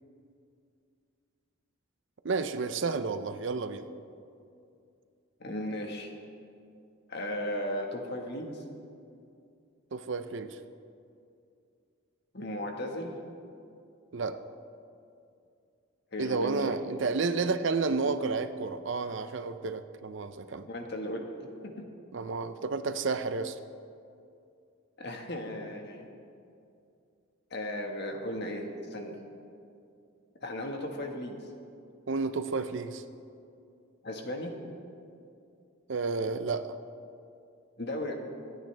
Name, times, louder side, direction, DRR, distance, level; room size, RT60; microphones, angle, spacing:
voice 1, 2.2-3.9 9.9-10.6 14.1-14.4 16.2-20.7 22.1-23.6 32.1-33.0 35.9-36.7, right 4 dB, 60° right, 10 dB, 0.6 m, -31 dB
voice 2, 5.4-6.1 7.1-8.6 12.3-13.1 16.1-16.7 20.7-21.8 25.0-26.0 27.5-29.2 30.4-31.4 34.0-34.6 37.8-38.1, left 1 dB, 50° left, 2 dB, 1.6 m, -36 dB
26.5 x 9.0 x 3.4 m, 2.5 s
head